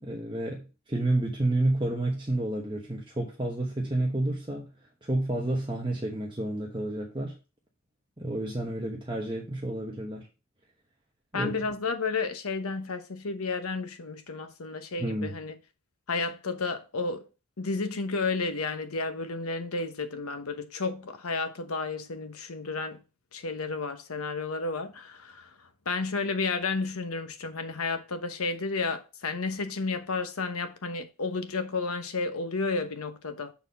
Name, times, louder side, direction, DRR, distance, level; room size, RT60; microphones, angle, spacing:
voice 1, 0.0-4.7 5.0-7.3 8.2-10.3 11.3-11.5 15.0-15.4, right 1 dB, 20° right, 1.0 m, -30 dB
voice 2, 11.3-15.5 16.1-17.3 17.6-23.0 23.3-25.5 25.9-33.5, left 4 dB, 80° left, 1.0 m, -32 dB
7.0 x 4.2 x 5.4 m
head